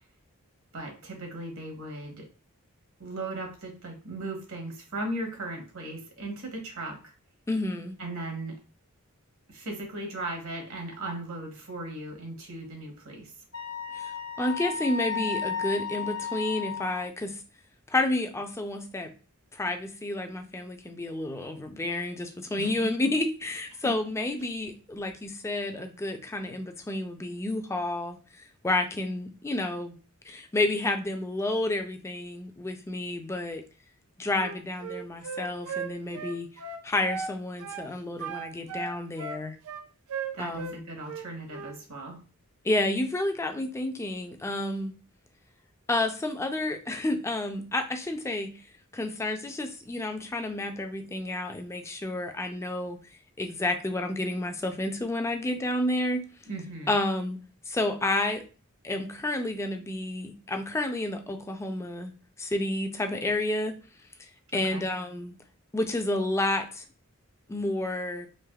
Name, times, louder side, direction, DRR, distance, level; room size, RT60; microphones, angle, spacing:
voice 1, 0.7-2.3 3.0-7.1 8.0-8.6 9.5-13.3 22.6-22.9 23.8-24.0 40.3-42.2 56.5-56.9 64.7-64.8, right 2 dB, 65° right, 2 dB, 1.1 m, -37 dB
voice 2, 7.5-8.0 13.9-14.1 14.4-17.4 17.9-19.1 19.5-28.2 28.6-30.0 30.2-33.6 34.2-36.5 36.8-39.6 40.4-40.8 42.6-44.9 45.9-48.5 48.9-53.0 53.4-56.2 56.9-57.4 57.7-58.4 58.8-62.1 62.4-63.7 64.5-65.4 65.7-66.8 67.5-68.3, left 2 dB, 15° left, 5 dB, 0.3 m, -30 dB
Wind instrument woodwind instrument, 13.5-17.0, left 6 dB, 65° left, 1.0 m, -33 dB
Wind instrument woodwind instrument 2, 34.4-37.4 37.6-37.9 38.2-40.8 41.1-41.8, right 5 dB, 85° right, 0.4 m, -36 dB
3.3 x 2.8 x 2.3 m, 0.36 s
head